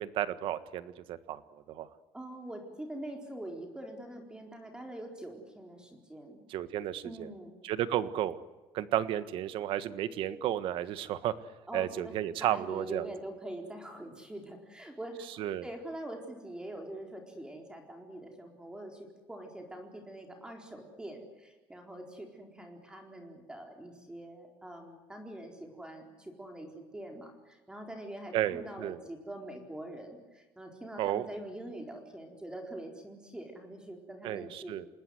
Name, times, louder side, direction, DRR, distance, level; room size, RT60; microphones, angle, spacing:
voice 1, 0.0-1.9 6.5-7.3 7.6-8.4 8.7-11.3 11.7-13.1 15.4-15.6 28.3-29.0 31.0-31.3 34.2-34.9, right 12 dB, 70° right, 13 dB, 1.5 m, -33 dB
voice 2, 2.1-6.4 7.0-7.5 11.7-12.1 12.4-34.7, right 1 dB, 10° right, 2 dB, 4.2 m, -44 dB
28.0 x 19.5 x 7.9 m, 1.2 s
cardioid pair, 125°, 9 cm